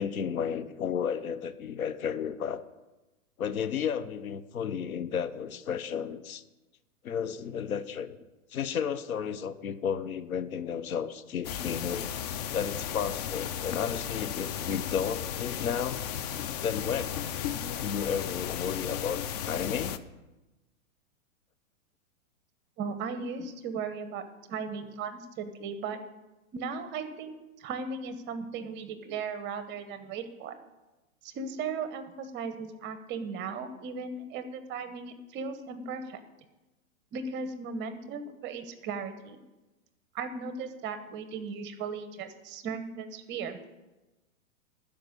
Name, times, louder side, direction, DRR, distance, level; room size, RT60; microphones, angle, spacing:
voice 1, 0.0-2.6 3.4-6.4 7.0-8.2 8.5-12.1 12.5-16.0 16.6-17.2 17.8-20.0, left 7 dB, 80° left, 12 dB, 1.0 m, -33 dB
sound 1, 11.4-20.0, left 9 dB, 30° left, 0.4 m, -35 dB
voice 2, 22.8-26.0 26.5-30.5 31.2-36.2 37.1-39.4 40.1-43.6, right 5 dB, 25° right, 10 dB, 1.0 m, -37 dB
12.5 x 5.2 x 8.2 m, 1.1 s
hypercardioid pair, 130°, 42 cm